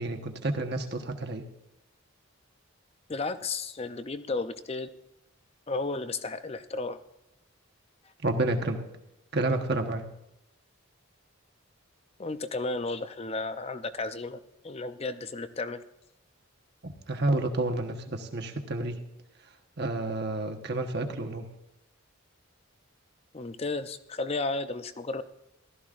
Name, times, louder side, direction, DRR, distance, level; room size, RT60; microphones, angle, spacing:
voice 1, 0.0-1.5 8.2-8.8 9.3-10.0 16.8-19.0 19.8-21.5, right 2 dB, 50° right, 5 dB, 1.2 m, -30 dB
voice 2, 3.1-4.9 5.7-7.0 12.2-14.4 14.6-15.8 23.3-25.2, left 3 dB, 30° left, 11 dB, 0.5 m, -33 dB
15.5 x 13.0 x 2.5 m, 0.86 s
head